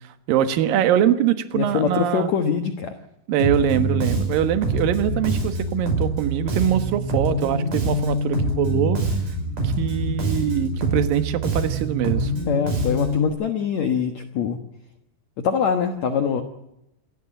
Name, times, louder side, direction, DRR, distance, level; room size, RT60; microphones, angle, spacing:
voice 1, 0.3-2.3 3.3-9.0 9.6-12.3, right 10 dB, 65° right, 11 dB, 2.7 m, -23 dB
voice 2, 1.5-2.9 12.5-14.6 15.4-16.4, left 7 dB, 70° left, 6 dB, 1.7 m, -23 dB
Bass guitar, 3.4-13.3, right 1 dB, 45° right, 7.0 m, -25 dB
28.0 x 13.0 x 9.0 m, 0.85 s
omnidirectional pair, 5.2 m